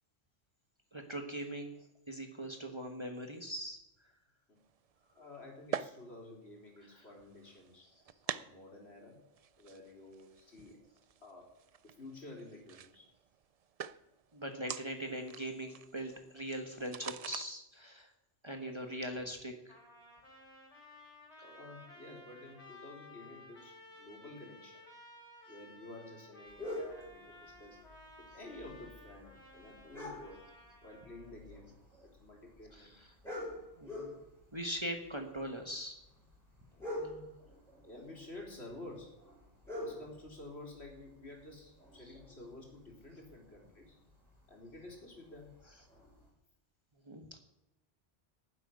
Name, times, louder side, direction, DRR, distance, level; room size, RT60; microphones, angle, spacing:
voice 1, 0.9-1.8 2.1-3.8 6.9-7.0 14.3-18.1 18.4-19.7 32.7-33.1 33.8-34.1 34.5-36.0 47.0-47.4, equal, 25° right, 4 dB, 1.3 m, -41 dB
sound 1, 4.6-17.5, right 8 dB, 60° right, 0.4 m, -46 dB
voice 2, 5.1-7.9 8.3-9.2 9.6-10.8 11.2-11.5 11.8-13.1 21.4-24.8 25.5-27.8 28.2-30.4 30.8-31.7 32.0-32.9 36.7-37.3 37.8-39.1 39.7-44.0 44.5-45.5, left 2 dB, 65° left, -1 dB, 3.7 m, -51 dB
Trumpet, 19.7-31.3, left 1 dB, 30° left, 3.5 m, -56 dB
sound 2, 26.5-46.3, left 1 dB, ahead, 5.8 m, -49 dB
10.5 x 7.8 x 9.7 m, 0.91 s
omnidirectional pair, 1.2 m